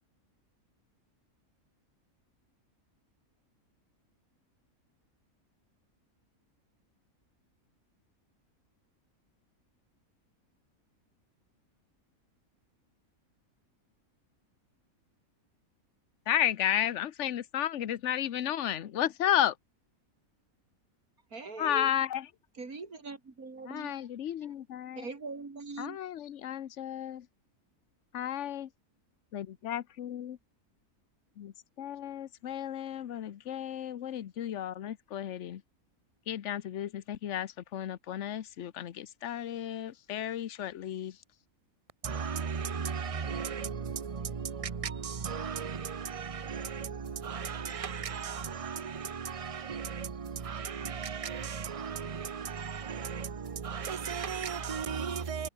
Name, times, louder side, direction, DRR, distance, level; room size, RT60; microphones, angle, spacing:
voice 1, 16.3-19.5 21.6-22.2 23.7-25.1 25.8-27.2 28.1-28.7 29.3-30.4 31.4-31.5 31.8-35.6 36.3-41.1, left 11 dB, 60° left, 1.1 m, -33 dB
voice 2, 21.3-21.9 22.5-24.0 25.0-26.0, right 4 dB, 85° right, 3.6 m, -41 dB
voice 3, 42.0-55.5, right 6 dB, 30° right, 0.8 m, -36 dB
omnidirectional pair, 1.5 m